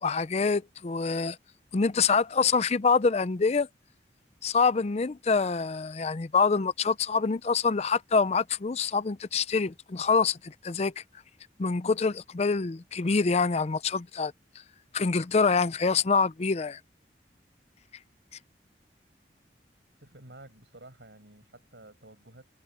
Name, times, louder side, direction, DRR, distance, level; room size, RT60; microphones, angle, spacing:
voice 1, 0.0-1.4 1.7-3.7 4.4-11.0 11.6-14.3 14.9-16.8, left 4 dB, 35° left, 0.5 m, -26 dB
voice 2, 20.0-22.5, right 2 dB, 80° right, 6.3 m, -51 dB
head